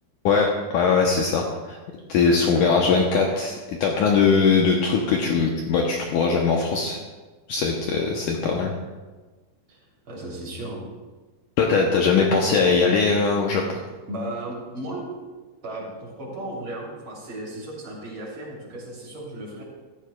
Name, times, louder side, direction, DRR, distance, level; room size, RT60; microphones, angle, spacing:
voice 1, 0.2-1.8 2.1-7.0 7.5-8.7 11.6-13.6, left 5 dB, 85° left, 0 dB, 1.8 m, -21 dB
voice 2, 2.4-3.0 9.7-9.8 10.1-10.8 14.1-15.0 15.6-19.6, right 1 dB, 30° right, -4 dB, 3.5 m, -35 dB
14.5 x 14.5 x 2.3 m, 1.3 s
omnidirectional pair, 4.9 m